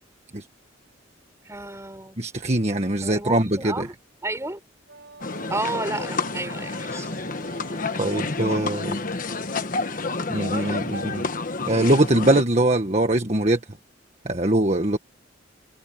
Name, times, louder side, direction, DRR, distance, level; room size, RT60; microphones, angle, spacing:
voice 1, 1.5-2.2 3.0-3.9 4.2-4.6 5.5-7.1, right 2 dB, 15° right, 5.3 m, -31 dB
voice 2, 2.2-3.9 8.0-9.0 10.3-11.3 11.7-13.6 14.2-15.0, right 1 dB, 35° right, 1.6 m, -22 dB
Wind instrument woodwind instrument, 4.9-9.1, right 3 dB, 65° right, 7.2 m, -46 dB
sound 1, 5.2-12.4, left 3 dB, 45° left, 1.3 m, -29 dB
head